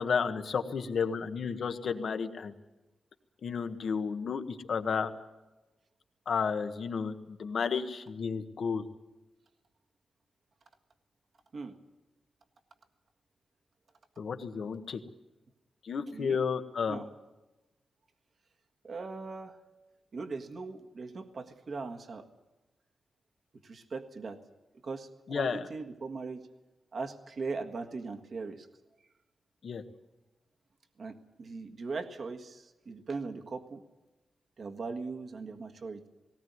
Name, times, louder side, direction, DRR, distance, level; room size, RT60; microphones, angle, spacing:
voice 1, 0.0-2.5 3.4-5.1 6.3-8.9 14.2-15.0 15.8-17.0 25.3-25.7 29.6-29.8, left 6 dB, 65° left, 8 dB, 1.4 m, -32 dB
voice 2, 16.1-16.5 16.9-17.1 18.8-19.6 20.1-22.3 23.6-24.4 24.8-26.5 26.9-28.7 31.0-33.8 34.6-36.0, right 4 dB, 50° right, 5 dB, 1.7 m, -39 dB
19.0 x 18.5 x 9.5 m, 1.1 s
wide cardioid pair, 140°, 0 cm